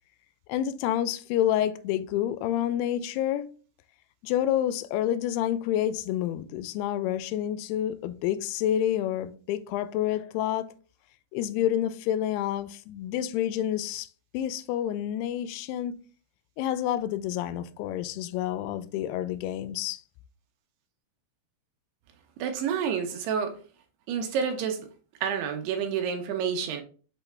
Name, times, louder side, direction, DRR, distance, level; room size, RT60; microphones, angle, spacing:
voice 1, 0.5-3.5 4.2-10.7 11.3-14.1 14.3-15.9 16.6-20.0, left 11 dB, 80° left, 2.5 m, -28 dB
voice 2, 22.4-23.6 24.1-24.8 25.2-26.8, right 7 dB, 80° right, 2.8 m, -29 dB
8.1 x 4.0 x 3.3 m
omnidirectional pair, 4.8 m